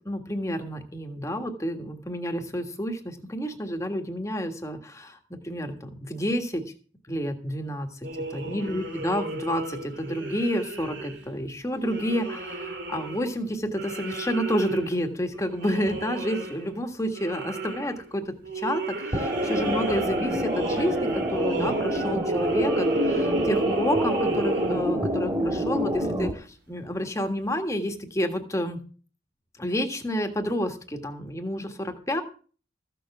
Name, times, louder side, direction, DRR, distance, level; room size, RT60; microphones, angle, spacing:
voice 1, 0.0-6.6 7.1-8.0 8.3-28.8 29.6-32.2, equal, 15° left, 5 dB, 1.6 m, -30 dB
sound 1, 8.0-11.3 11.8-13.5 13.7-16.7 17.1-18.1 18.4-25.4 25.8-26.1 27.0-27.1 27.7-27.8, right 2 dB, 70° right, 2.5 m, -33 dB
sound 2, 19.1-26.3, right 1 dB, 25° right, 2.4 m, -27 dB
14.5 x 6.9 x 7.2 m, 0.40 s
head